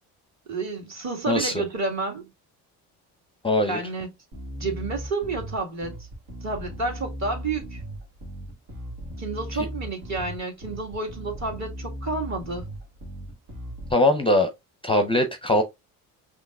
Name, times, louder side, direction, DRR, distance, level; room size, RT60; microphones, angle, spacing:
voice 1, 0.5-2.3 3.6-4.1 4.6-6.0 6.4-7.8 9.2-12.6, right 3 dB, 40° right, 2.0 m, -30 dB
voice 2, 1.3-1.6 3.4-3.8 13.9-14.5 14.8-15.6, left 1 dB, 15° left, 0.6 m, -21 dB
Bass guitar, 4.3-13.9, equal, 80° right, 1.6 m, -37 dB
5.0 x 3.0 x 2.3 m
supercardioid pair, 65°, 42 cm